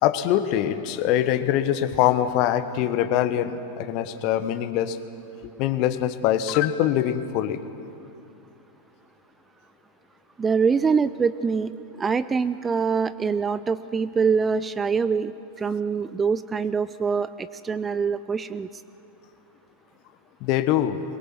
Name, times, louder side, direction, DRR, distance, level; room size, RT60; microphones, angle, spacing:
voice 1, 0.0-5.0 5.6-7.6 20.4-21.0, left 11 dB, 45° left, 12 dB, 1.2 m, -23 dB
voice 2, 10.4-18.7, right 5 dB, 15° right, 15 dB, 0.5 m, -24 dB
23.0 x 22.0 x 7.6 m, 2.7 s
figure-of-eight pair, 90°, 0 cm